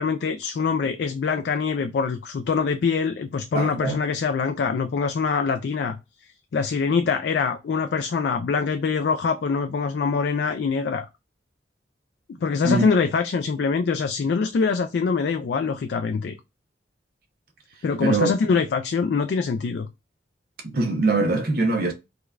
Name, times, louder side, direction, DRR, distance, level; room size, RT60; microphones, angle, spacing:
voice 1, 0.0-6.0 6.5-11.1 12.4-16.4 17.8-19.9, left 5 dB, 65° left, 0.3 m, -24 dB
voice 2, 3.5-4.0 12.6-12.9 18.0-18.3 20.6-21.9, right 3 dB, 55° right, 0.7 m, -22 dB
4.8 x 2.3 x 2.3 m
head